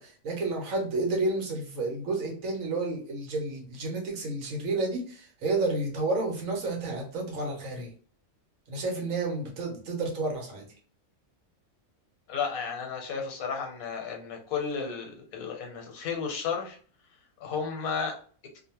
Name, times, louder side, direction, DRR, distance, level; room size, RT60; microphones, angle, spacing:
voice 1, 0.0-7.9 8.7-10.7, right 2 dB, 75° right, 0 dB, 1.2 m, -31 dB
voice 2, 12.3-16.8 17.4-18.2, left 6 dB, 85° left, 2 dB, 1.2 m, -33 dB
2.7 x 2.1 x 2.8 m, 0.43 s
omnidirectional pair, 1.4 m